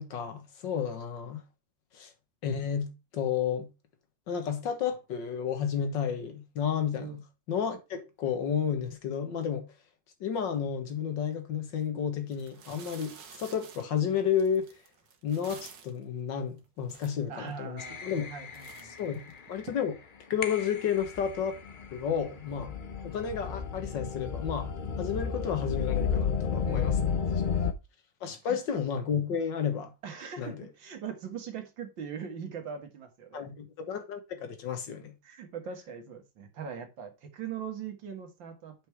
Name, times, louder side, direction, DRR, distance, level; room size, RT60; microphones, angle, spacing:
voice 1, 0.0-1.4 1.9-2.1 2.4-3.7 4.3-7.2 7.5-9.7 10.2-14.7 15.2-18.3 19.0-19.2 19.5-20.0 20.3-21.6 21.9-22.7 23.0-24.7 25.0-27.1 28.2-29.9 30.4-30.6 33.3-35.1, left 7 dB, 75° left, 2.0 m, -31 dB
sound 1, 11.7-11.8 12.3-16.0 16.6-16.7 16.8-17.6 18.0-18.3 18.5-19.7, right 6 dB, 60° right, 1.7 m, -50 dB
voice 2, 17.3-19.1 26.6-27.7 28.3-28.6 30.0-33.4 35.2-38.7, right 6 dB, 85° right, 2.2 m, -41 dB
sound 2, 17.8-19.6 20.4-27.7, left 6 dB, 50° left, 0.6 m, -33 dB
6.9 x 5.4 x 4.6 m
omnidirectional pair, 2.0 m